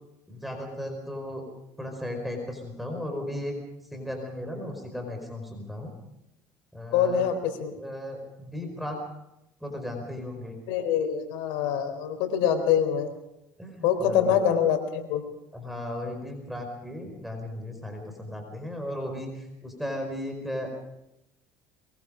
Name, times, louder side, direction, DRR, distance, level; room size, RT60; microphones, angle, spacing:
voice 1, 0.3-1.4 1.8-3.5 3.9-5.9 6.7-7.3 7.7-9.0 9.6-10.6 13.6-14.4 15.5-20.7, left 1 dB, ahead, 3 dB, 5.0 m, -36 dB
voice 2, 6.9-7.7 10.7-13.1 13.8-15.2, left 8 dB, 80° left, 7 dB, 4.1 m, -25 dB
22.5 x 22.5 x 5.2 m, 0.87 s
supercardioid pair, 105°, 8 cm